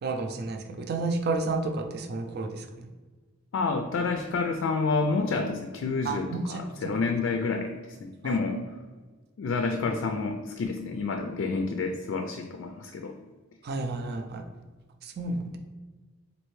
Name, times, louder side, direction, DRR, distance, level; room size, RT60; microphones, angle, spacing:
voice 1, 0.0-2.9 6.0-6.9 8.2-8.4 13.6-14.4 15.0-15.6, right 3 dB, 55° right, 5 dB, 0.4 m, -31 dB
voice 2, 3.5-8.6 9.4-13.1, left 4 dB, 70° left, 4 dB, 0.3 m, -29 dB
4.2 x 2.7 x 3.1 m, 1.3 s
head